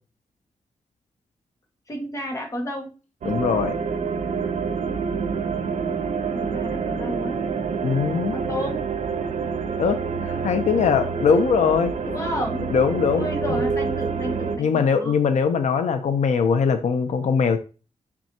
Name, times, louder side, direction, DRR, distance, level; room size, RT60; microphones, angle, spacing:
voice 1, 1.9-3.0 6.3-7.5 8.3-8.8 12.0-12.7 13.1-15.1, left 1 dB, 25° left, 1 dB, 1.7 m, -31 dB
sound 1, 3.2-14.6, right 5 dB, 80° right, 0.9 m, -27 dB
voice 2, 3.3-3.8 7.8-8.3 9.8-11.9 12.7-13.6 14.6-17.6, left 6 dB, 80° left, 8 dB, 0.7 m, -21 dB
6.4 x 6.1 x 2.9 m, 0.32 s
wide cardioid pair, 160°, 12 cm